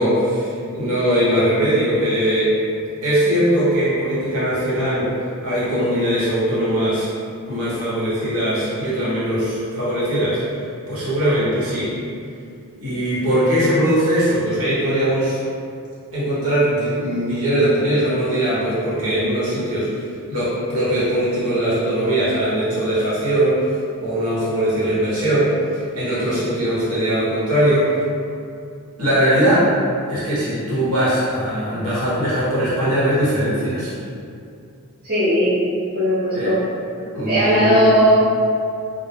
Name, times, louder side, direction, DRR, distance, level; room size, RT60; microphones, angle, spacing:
voice 1, 0.0-2.6 3.0-5.1 5.4-7.1 7.5-10.4 10.9-11.9 12.8-15.4 16.1-19.9 20.3-23.6 24.0-25.5 25.9-27.9 29.0-29.7 30.1-33.9 36.3-36.5 37.0-37.8, right 1 dB, 75° right, -10 dB, 1.0 m, -20 dB
voice 2, 35.0-35.6 35.9-36.6 37.3-38.1, equal, 45° right, -13 dB, 0.7 m, -17 dB
2.2 x 2.0 x 3.2 m, 2.4 s
head